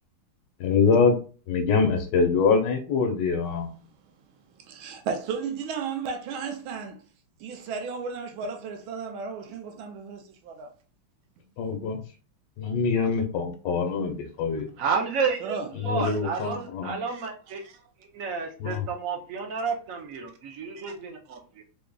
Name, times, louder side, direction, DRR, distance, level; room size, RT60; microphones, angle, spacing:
voice 1, 0.6-1.2 1.5-3.7 11.6-12.0 12.6-14.7 15.8-17.0 18.6-18.8, left 5 dB, 70° left, 1.3 m, -24 dB
voice 2, 4.7-7.0 7.4-10.7 15.4-15.7 16.0-16.2 17.1-17.3 17.6-17.7 20.9-21.0, right 5 dB, 80° right, 1.4 m, -34 dB
voice 3, 14.8-15.6 15.8-17.6 18.1-21.6, right 5 dB, 60° right, 0.9 m, -31 dB
3.8 x 3.5 x 2.3 m
omnidirectional pair, 2.2 m